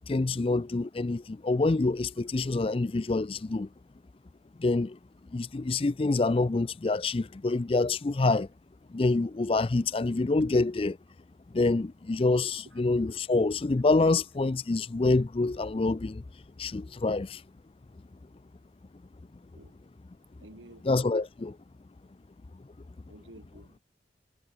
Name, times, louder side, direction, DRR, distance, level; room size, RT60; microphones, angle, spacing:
voice 1, 0.1-3.7 4.6-5.0 5.3-8.5 8.9-11.0 11.5-16.2 16.6-17.4 20.8-21.6, left 3 dB, 30° left, 0.4 m, -26 dB
voice 2, 20.4-20.8 23.1-23.8, right 1 dB, 90° right, 3.3 m, -52 dB
head